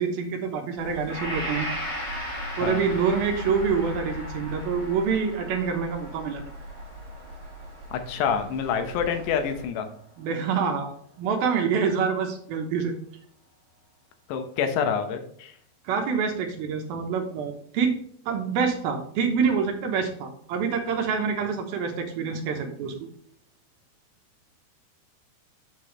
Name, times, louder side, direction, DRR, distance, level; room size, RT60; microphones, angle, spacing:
voice 1, 0.0-1.7 2.6-6.4 10.2-10.9 11.2-12.9 15.8-18.0 18.3-22.9, right 6 dB, 75° right, 4 dB, 2.5 m, -26 dB
sound 1, 0.8-9.7, equal, 35° right, 3.8 m, -40 dB
Gong, 1.1-9.1, left 1 dB, 30° left, 2.2 m, -37 dB
voice 2, 7.9-9.9 14.3-15.5, left 7 dB, 85° left, 7 dB, 3.2 m, -27 dB
7.8 x 6.7 x 3.2 m, 0.64 s
omnidirectional pair, 4.9 m